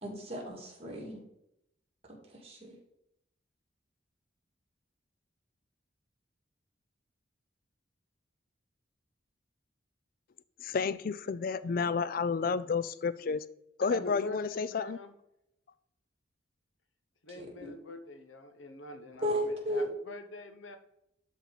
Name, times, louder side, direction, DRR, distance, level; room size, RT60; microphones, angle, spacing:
voice 1, 0.0-1.2 2.3-2.8 17.3-17.7 19.2-19.9, equal, 30° right, -1 dB, 2.1 m, -35 dB
voice 2, 10.6-13.4 13.8-15.0, left 5 dB, 45° left, 16 dB, 0.3 m, -31 dB
voice 3, 13.9-15.1 17.2-20.8, left 1 dB, 85° left, 8 dB, 1.0 m, -44 dB
11.5 x 4.2 x 4.0 m, 0.81 s
head